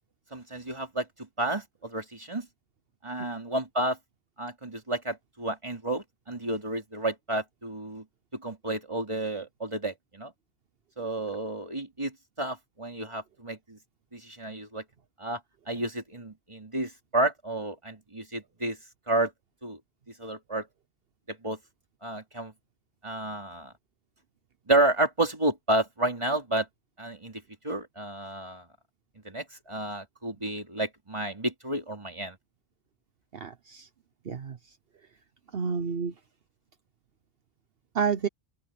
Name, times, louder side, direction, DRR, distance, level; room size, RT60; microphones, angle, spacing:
voice 1, 0.3-1.1 1.4-2.5 3.0-4.0 4.4-8.0 8.3-10.3 11.0-13.8 14.1-14.8 15.2-15.4 15.7-18.8 19.1-19.3 19.6-19.8 20.2-20.7 21.3-21.6 22.0-22.5 23.0-23.7 24.7-26.7 27.0-28.7 29.3-32.4, right 2 dB, 30° right, 3.3 m, -31 dB
voice 2, 33.3-33.9 34.3-34.6 35.5-36.1 37.9-38.3, right 6 dB, 65° right, 1.1 m, -29 dB
open air
omnidirectional pair, 1.1 m